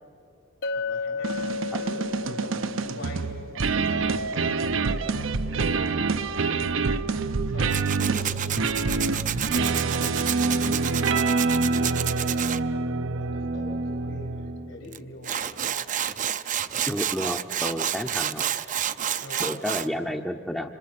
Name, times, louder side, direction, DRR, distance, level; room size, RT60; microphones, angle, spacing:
Chink clink, 0.6-4.8, left 4 dB, 55° left, 0.5 m, -34 dB
voice 1, 0.7-3.4 3.8-15.5 19.2-20.3, left 1 dB, 85° left, 2 dB, 3.8 m, -44 dB
sound 1, 1.2-14.7, right 4 dB, 80° right, 0.7 m, -26 dB
Tools, 7.7-12.6 14.9-15.0 15.2-19.9, right 10 dB, 40° right, 0.5 m, -29 dB
voice 2, 16.9-18.4 19.4-20.7, equal, 5° left, 1 dB, 0.6 m, -31 dB
26.5 x 25.5 x 5.9 m, 3.0 s
head